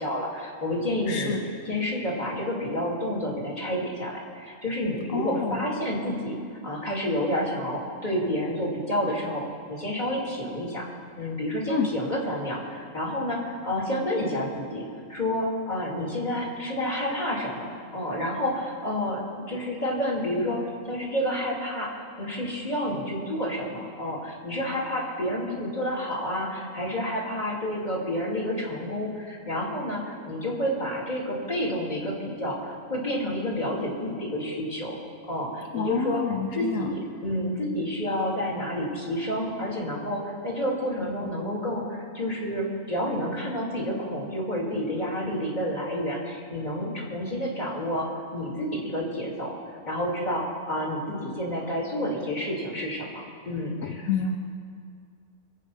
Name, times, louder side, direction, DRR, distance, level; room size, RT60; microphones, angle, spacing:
voice 1, 0.0-1.4 1.6-6.3 6.6-10.8 11.2-14.8 15.1-35.0 35.3-36.2 36.5-48.1 48.3-49.6 49.8-54.1, equal, 35° left, -4 dB, 2.9 m, -29 dB
voice 2, 1.1-1.4 5.1-5.7 11.7-11.9 35.7-36.9 53.8-54.4, left 6 dB, 80° left, 3 dB, 1.2 m, -28 dB
24.0 x 8.3 x 5.6 m, 2.2 s
omnidirectional pair, 1.4 m